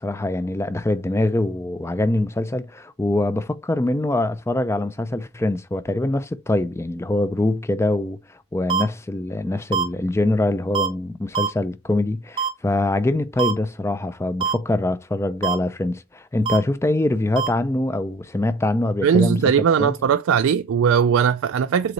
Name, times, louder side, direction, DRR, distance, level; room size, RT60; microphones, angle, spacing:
voice 1, 0.0-8.2 8.5-19.5 19.8-19.9, left 2 dB, 10° left, 0.3 m, -23 dB
sound 1, 8.7-8.8 9.7-9.8 10.7-10.9 11.3-11.5 12.4-12.5 13.4-13.5 14.4-14.5 15.4-15.6 16.5-16.6 17.4-17.5, right 6 dB, 25° right, 0.7 m, -22 dB
voice 2, 19.0-21.9, right 7 dB, 60° right, 0.3 m, -19 dB
7.8 x 3.9 x 3.1 m
head